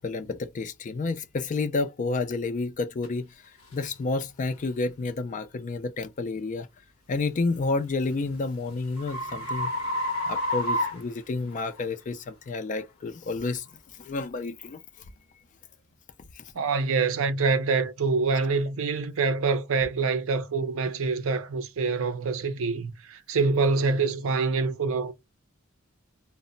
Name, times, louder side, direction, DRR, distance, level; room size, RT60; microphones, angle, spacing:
voice 1, 0.0-3.3 3.7-6.7 7.1-9.7 10.3-13.7 14.0-14.8 16.3-16.4, left 3 dB, 35° left, 0.4 m, -30 dB
sound 1, 3.0-3.1 3.7-3.9 4.5-4.7 7.3-11.8, left 1 dB, 75° left, 0.7 m, -31 dB
voice 2, 16.5-25.1, right 4 dB, 70° right, 0.5 m, -25 dB
2.0 x 2.0 x 3.7 m
head